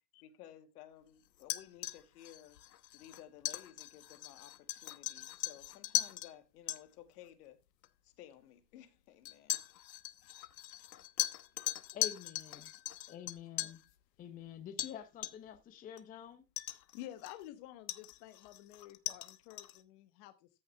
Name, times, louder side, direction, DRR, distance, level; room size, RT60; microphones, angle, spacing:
voice 1, 0.2-2.6 2.9-7.6 8.0-9.6, left 11 dB, 65° left, 2.0 m, -56 dB
sound 1, 1.4-6.3 6.7-6.8 7.8-7.9 9.3-13.8 14.8-15.0 15.2-15.6 16.0-16.1 16.6-17.5 17.9-19.8, left 14 dB, 85° left, 1.2 m, -39 dB
voice 2, 11.9-12.7 13.1-13.8 14.2-16.4, left 9 dB, 15° left, 0.8 m, -48 dB
voice 3, 16.7-20.5, left 13 dB, 45° left, 1.1 m, -51 dB
14.0 x 6.4 x 3.3 m
supercardioid pair, 145°, 49 cm